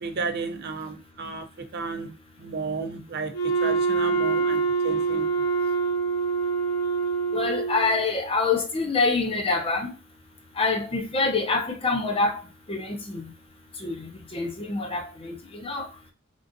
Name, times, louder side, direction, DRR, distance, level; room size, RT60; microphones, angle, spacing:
voice 1, 0.0-1.5 1.7-2.1 2.4-3.3 3.6-5.3, right 4 dB, 50° right, 0.6 m, -32 dB
Wind instrument woodwind instrument, 3.3-8.1, right 5 dB, 90° left, 0.6 m, -25 dB
voice 2, 7.3-9.9 10.6-12.4 12.7-13.2 13.8-15.4 15.6-15.9, left 3 dB, 25° left, 0.6 m, -26 dB
3.7 x 2.5 x 2.6 m
head